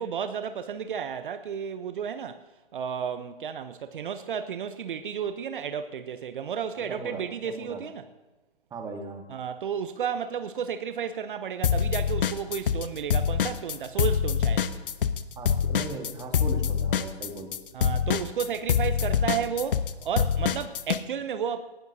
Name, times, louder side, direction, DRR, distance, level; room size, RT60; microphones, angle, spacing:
voice 1, 0.0-2.4 2.7-8.0 9.3-14.8 17.7-21.6, right 7 dB, 55° right, 0.8 m, -32 dB
voice 2, 6.7-7.8 8.7-9.2 15.4-17.5, right 3 dB, 10° right, 1.6 m, -38 dB
sound 1, 11.6-12.9 13.1-21.0, left 7 dB, 55° left, 0.9 m, -25 dB
18.5 x 17.5 x 2.7 m
figure-of-eight pair, 130°, 31 cm